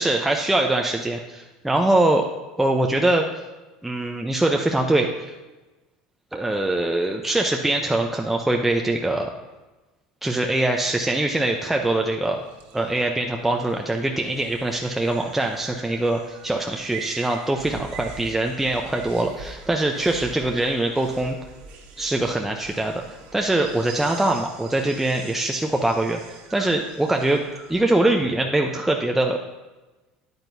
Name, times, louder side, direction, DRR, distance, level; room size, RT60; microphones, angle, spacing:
voice 1, 0.0-2.2 2.6-3.4 3.8-5.3 6.3-9.3 10.2-12.4 12.7-21.4 22.0-22.9 23.3-26.2 26.5-27.4 27.7-29.4, right 2 dB, 5° right, 2 dB, 0.7 m, -23 dB
sound 1, 10.8-27.8, right 4 dB, 60° right, 1.5 m, -43 dB
9.6 x 8.9 x 2.7 m, 1.2 s
hypercardioid pair, 85°, 2 cm